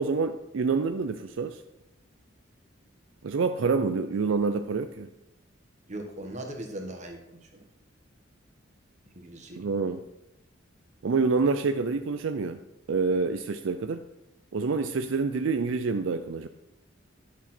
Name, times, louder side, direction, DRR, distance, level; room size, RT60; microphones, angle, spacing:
voice 1, 0.0-1.6 3.2-5.1 9.6-10.0 11.0-12.6 12.9-14.0 14.5-16.5, right 4 dB, 70° right, 8 dB, 0.4 m, -27 dB
voice 2, 5.9-7.7 9.1-9.7, right 1 dB, 35° right, 3 dB, 1.5 m, -39 dB
11.0 x 6.1 x 4.4 m, 0.88 s
head